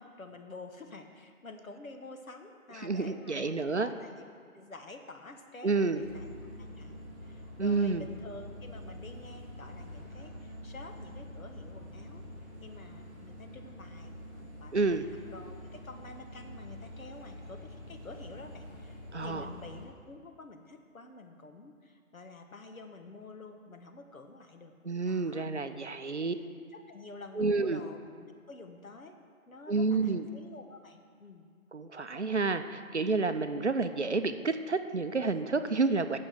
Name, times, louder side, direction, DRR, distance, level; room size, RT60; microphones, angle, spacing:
voice 1, 0.0-4.3 4.5-6.3 6.6-12.3 12.6-24.7 25.0-25.5 26.2-29.2 29.5-31.5, left 3 dB, 70° left, 5 dB, 1.1 m, -49 dB
voice 2, 2.8-3.9 5.6-6.0 7.6-8.1 14.7-15.1 19.1-19.5 24.8-26.3 27.4-27.8 29.7-30.3 31.7-36.2, right 4 dB, 55° right, 9 dB, 0.5 m, -29 dB
sound 1, 6.0-19.9, left 1 dB, 10° right, 1.3 m, -46 dB
8.1 x 6.2 x 6.4 m, 2.2 s
figure-of-eight pair, 170°, 43 cm